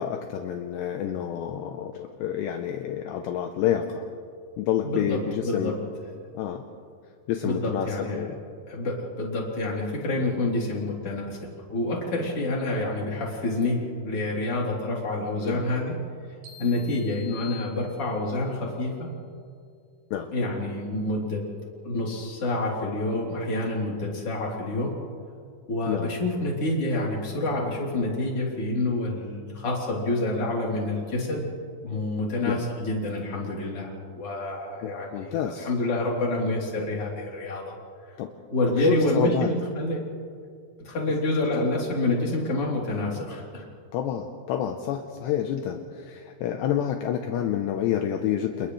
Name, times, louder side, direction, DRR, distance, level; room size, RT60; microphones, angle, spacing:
voice 1, 0.0-4.0 4.6-5.7 6.3-6.6 7.3-8.4 15.4-15.6 20.1-20.3 25.9-26.1 32.5-32.7 34.8-35.7 38.2-38.3 38.8-39.5 43.9-48.7, left 9 dB, 75° left, 4 dB, 2.7 m, -28 dB
voice 2, 4.8-5.7 7.4-8.2 8.7-11.4 11.7-13.8 14.0-15.9 16.6-19.1 20.3-21.4 21.8-24.9 25.7-31.5 31.8-37.8 38.5-40.0 40.8-43.7, left 2 dB, 30° left, -3 dB, 3.9 m, -28 dB
sound 1, 16.4-18.4, left 6 dB, 45° right, 3.9 m, -47 dB
30.0 x 29.5 x 3.3 m, 2.2 s
omnidirectional pair, 5.6 m